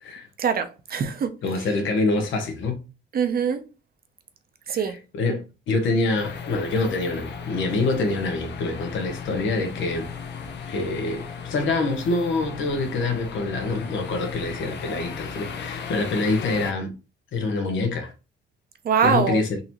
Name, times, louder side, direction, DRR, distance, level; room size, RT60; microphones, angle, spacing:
voice 1, 0.4-1.3 3.1-3.6 4.7-5.0 18.8-19.4, right 6 dB, 50° right, 0.7 m, -23 dB
voice 2, 1.4-2.8 4.7-10.1 10.7-17.0 17.3-18.1 19.0-19.6, left 3 dB, 75° left, 1.0 m, -26 dB
sound 1, 6.2-16.7, left 6 dB, 60° left, 0.7 m, -36 dB
3.9 x 2.7 x 3.0 m
cardioid pair, 90°, 20 cm